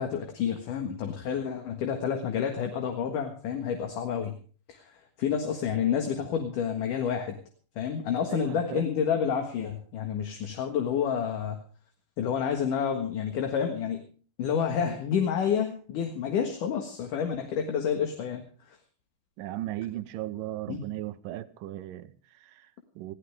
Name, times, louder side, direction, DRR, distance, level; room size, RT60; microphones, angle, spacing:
voice 1, 0.0-4.4 4.7-4.9 5.2-7.4 7.8-11.6 12.2-14.1 14.4-18.4 18.7-18.8 20.7-20.8, left 7 dB, 60° left, 2.9 m, -29 dB
voice 2, 8.3-8.9 19.4-23.1, right 14 dB, 75° right, 2.2 m, -37 dB
21.0 x 15.5 x 3.5 m
omnidirectional pair, 4.5 m